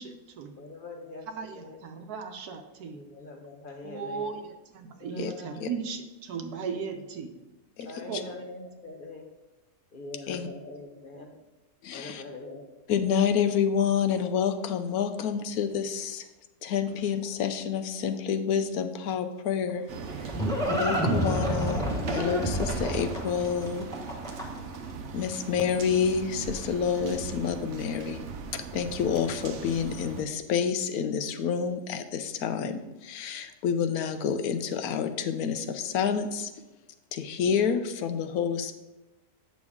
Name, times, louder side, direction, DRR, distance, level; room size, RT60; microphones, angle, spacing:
voice 1, 0.0-0.5 1.3-3.0 3.8-7.3 8.0-8.3, right 5 dB, 80° right, 6 dB, 1.3 m, -37 dB
voice 2, 0.6-1.3 1.5-1.8 2.9-4.3 4.9-5.7 7.8-9.3 9.9-11.4 11.9-12.7 13.4-13.5 16.9-17.1, left 2 dB, 45° left, 3 dB, 0.7 m, -43 dB
voice 3, 7.8-8.2 10.3-10.5 11.8-12.2 12.9-16.3 16.6-19.9 20.2-20.3 20.6-24.0 25.1-28.2 28.5-36.6 37.1-38.7, left 7 dB, 75° left, 9 dB, 1.1 m, -28 dB
Livestock farm animals working animals, 19.7-24.8, right 1 dB, ahead, 1.2 m, -29 dB
sound 1, 19.9-30.2, right 5 dB, 60° right, 0.9 m, -39 dB
8.7 x 6.2 x 3.6 m, 1.1 s
omnidirectional pair, 1.6 m